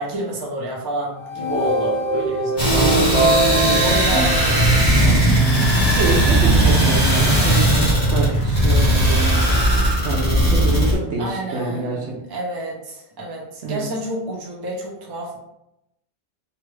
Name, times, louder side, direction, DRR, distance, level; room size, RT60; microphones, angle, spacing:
voice 1, 0.0-2.7 3.8-5.3 11.2-15.4, right 1 dB, 30° right, -4 dB, 0.5 m, -29 dB
sound 1, 1.2-5.5, right 2 dB, 40° left, 0.5 m, -23 dB
sound 2, 2.6-9.0, right 2 dB, 60° left, 1.2 m, -21 dB
sound 3, 2.6-10.9, equal, 20° left, 1.1 m, -19 dB
voice 2, 2.7-4.3 5.8-9.4 10.0-12.0 13.6-13.8, right 3 dB, 70° right, -1 dB, 0.9 m, -26 dB
2.9 x 2.3 x 3.1 m, 0.84 s
omnidirectional pair, 1.2 m